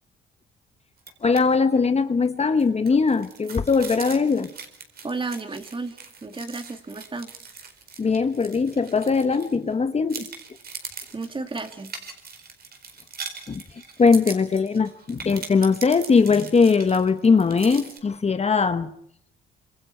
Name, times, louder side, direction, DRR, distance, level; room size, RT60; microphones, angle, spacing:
sound 1, 1.0-1.4 1.7-1.9 2.2-9.7 10.1-18.0, right 5 dB, 50° right, 4.4 m, -41 dB
voice 1, 1.2-4.5 8.0-10.3 13.5-13.6 14.0-18.9, left 5 dB, 30° left, 10 dB, 1.2 m, -20 dB
voice 2, 5.0-7.3 11.1-11.9, right 3 dB, 25° right, 7 dB, 2.4 m, -33 dB
26.5 x 25.0 x 4.5 m, 0.69 s
cardioid pair, 90°, 20 cm